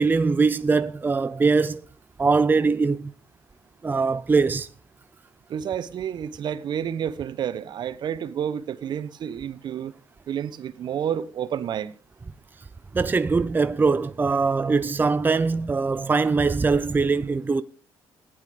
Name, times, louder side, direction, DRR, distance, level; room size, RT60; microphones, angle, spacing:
voice 1, 0.0-1.8 2.2-3.1 3.8-4.7 12.9-17.6, right 4 dB, 20° right, 0.6 m, -22 dB
voice 2, 5.5-9.9 10.3-11.9, right 9 dB, 60° right, 0.9 m, -30 dB
14.5 x 10.5 x 5.0 m
cardioid pair, 90°, 9 cm